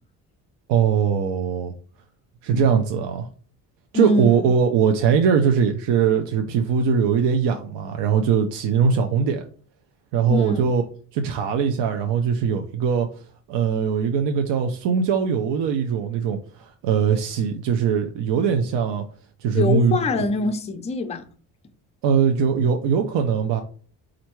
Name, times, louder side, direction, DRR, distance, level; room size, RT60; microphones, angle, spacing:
voice 1, 0.7-1.7 2.4-3.3 3.9-9.4 10.1-10.8 11.1-13.1 13.5-19.0 19.4-20.0 22.0-23.6, right 6 dB, 85° right, 0.6 m, -21 dB
voice 2, 3.9-4.5 10.3-10.7 19.5-21.2, left 3 dB, 20° left, 0.3 m, -24 dB
4.4 x 2.5 x 4.4 m
cardioid pair, 165°, 41 cm